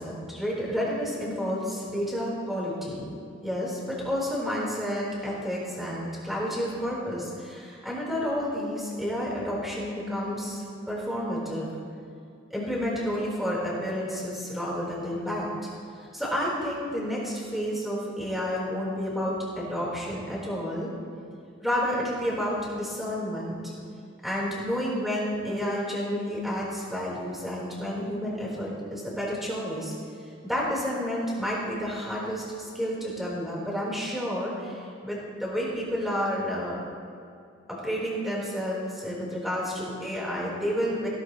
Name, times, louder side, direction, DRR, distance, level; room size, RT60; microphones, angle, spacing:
voice 1, 0.0-3.1 3.4-11.7 12.5-15.5 16.1-20.9 21.6-23.6 24.2-29.9 30.4-36.8 37.7-41.1, equal, ahead, -5 dB, 4.1 m, -30 dB
18.0 x 17.5 x 3.2 m, 2.5 s
head